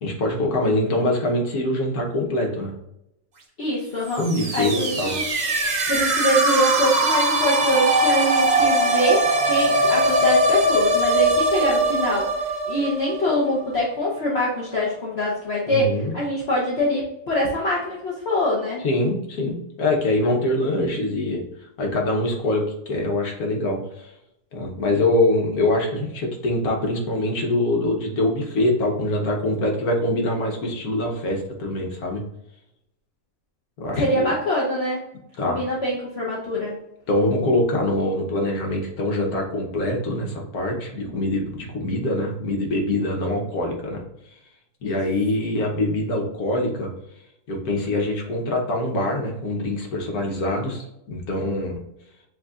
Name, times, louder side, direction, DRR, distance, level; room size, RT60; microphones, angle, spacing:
voice 1, 0.0-2.7 4.2-5.2 15.7-16.1 18.8-21.4 21.8-24.1 24.5-32.2 33.8-34.3 35.4-35.6 37.1-44.0 44.8-46.9 47.5-51.8, left 1 dB, 85° left, 1 dB, 1.5 m, -24 dB
voice 2, 3.6-4.3 4.5-5.2 5.9-18.8 34.0-35.0 35.4-36.7 44.8-45.0, equal, 50° left, -6 dB, 1.1 m, -24 dB
Flo fx iv, 4.1-13.8, right 1 dB, 40° right, 0.6 m, -21 dB
7.7 x 2.7 x 2.4 m, 0.81 s
omnidirectional pair, 1.6 m